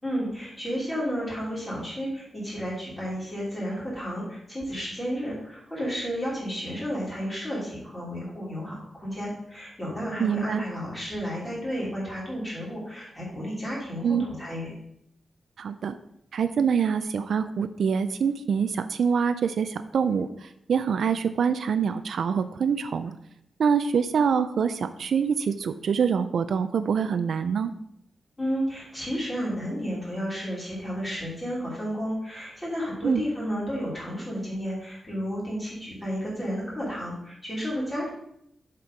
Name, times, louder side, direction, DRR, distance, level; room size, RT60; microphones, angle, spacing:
voice 1, 0.0-14.7 28.4-38.1, equal, 15° left, -6 dB, 3.1 m, -32 dB
voice 2, 10.2-10.6 14.0-14.3 15.6-16.0 16.3-23.1 23.6-27.7 33.0-33.2, right 6 dB, 75° right, 11 dB, 0.4 m, -25 dB
7.0 x 4.4 x 5.1 m, 0.75 s
wide cardioid pair, 165°, 0 cm